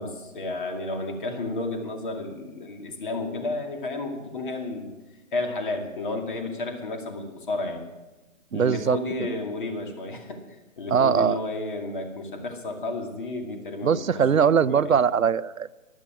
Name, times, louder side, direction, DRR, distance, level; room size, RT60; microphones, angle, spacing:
voice 1, 0.0-4.9 5.3-7.8 8.5-10.4 10.8-14.1 14.6-15.0, left 2 dB, 40° left, 4 dB, 2.4 m, -32 dB
voice 2, 8.5-9.0 10.9-11.4 13.8-15.7, right 7 dB, 85° right, 16 dB, 0.7 m, -21 dB
15.5 x 11.5 x 6.0 m, 1.1 s
figure-of-eight pair, 155°, 40 cm